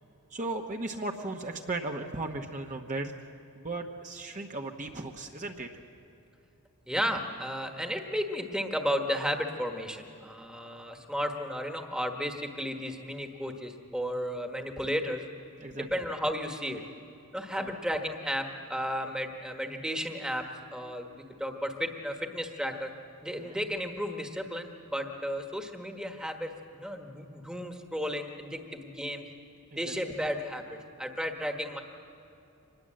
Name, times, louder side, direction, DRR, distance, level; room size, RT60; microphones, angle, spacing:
voice 1, 0.3-3.1 3.5-5.8 15.6-15.9 17.5-17.7 23.3-23.6 29.7-29.9, right 2 dB, 35° right, 2 dB, 1.1 m, -36 dB
voice 2, 6.9-15.2 15.7-16.8 17.3-20.4 20.7-21.1 21.4-22.9 23.2-29.2 29.7-31.8, equal, 5° right, 4 dB, 1.4 m, -33 dB
25.0 x 20.5 x 7.6 m, 2.8 s
head